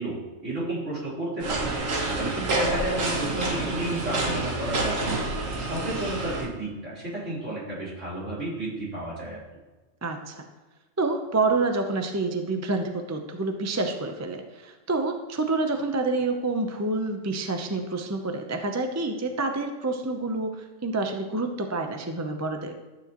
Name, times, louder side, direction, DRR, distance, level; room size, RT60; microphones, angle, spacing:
voice 1, 0.0-1.7 2.1-9.4, right 1 dB, 70° right, -7 dB, 4.0 m, -32 dB
sound 1, 1.4-6.5, right 2 dB, 85° right, 1.6 m, -28 dB
voice 2, 10.0-10.4 11.0-22.8, right 3 dB, 15° right, 4 dB, 0.6 m, -28 dB
12.0 x 9.2 x 3.0 m, 1.2 s
omnidirectional pair, 1.3 m